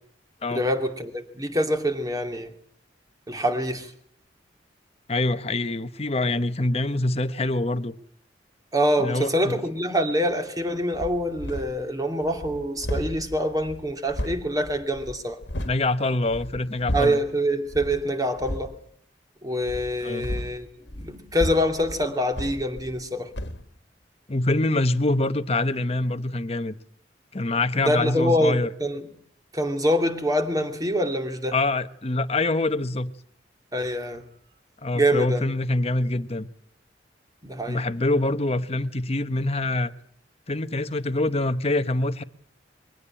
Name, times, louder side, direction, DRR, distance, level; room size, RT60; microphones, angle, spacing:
voice 1, 0.5-2.5 3.3-3.9 8.7-15.4 16.9-18.7 19.4-20.7 21.0-23.3 27.8-29.0 29.5-31.6 33.7-34.2 34.9-35.4 37.4-37.8, equal, 20° right, 2.6 m, -25 dB
voice 2, 5.1-7.9 9.0-9.6 15.6-17.2 20.0-20.3 24.3-26.7 27.3-28.7 31.5-33.1 34.8-36.5 37.7-39.9 40.5-42.2, left 2 dB, 35° left, 1.0 m, -25 dB
sound 1, 10.9-11.9 12.2-15.8 16.2-17.3 17.7-18.0 18.4-18.8 19.6-23.1 23.3-23.7, left 1 dB, 70° left, 1.8 m, -34 dB
22.5 x 17.0 x 8.9 m
head